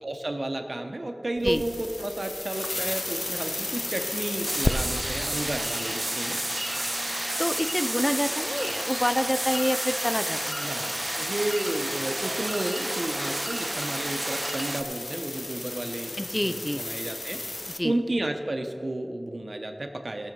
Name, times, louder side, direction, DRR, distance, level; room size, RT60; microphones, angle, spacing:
voice 1, 0.0-6.4 10.6-16.1 16.4-17.4 17.8-20.3, right 1 dB, 75° right, 5 dB, 0.9 m, -32 dB
sound 1, 1.4-17.8, left 2 dB, 80° left, 0.5 m, -35 dB
sound 2, 4.4-14.8, right 1 dB, 35° right, 0.5 m, -31 dB
voice 2, 7.4-10.7 16.2-16.9 17.7-17.9, equal, 20° left, 10 dB, 0.5 m, -27 dB
17.0 x 6.3 x 5.4 m, 2.5 s
wide cardioid pair, 50°, 0 cm